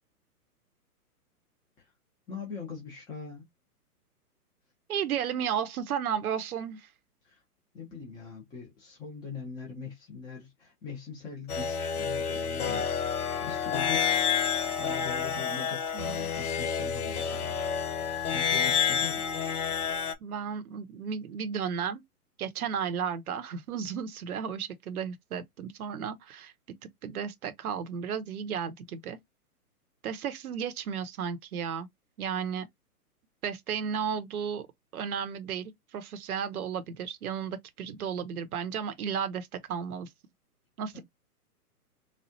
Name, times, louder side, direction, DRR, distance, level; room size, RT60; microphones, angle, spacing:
voice 1, 2.3-3.4 7.2-7.4 7.7-12.9 13.4-14.1 14.7-17.6 18.0-19.7 40.9-41.0, left 5 dB, 10° left, 0.7 m, -42 dB
voice 2, 4.9-6.9 15.9-16.3 20.2-22.0 22.4-26.5 27.0-29.2 30.0-31.9 32.2-32.7 33.4-34.7 34.9-40.1 40.8-41.0, right 7 dB, 70° right, 0.8 m, -33 dB
sound 1, 11.5-20.1, left 7 dB, 70° left, 1.1 m, -29 dB
4.1 x 2.4 x 2.7 m
hypercardioid pair, 135°, 46 cm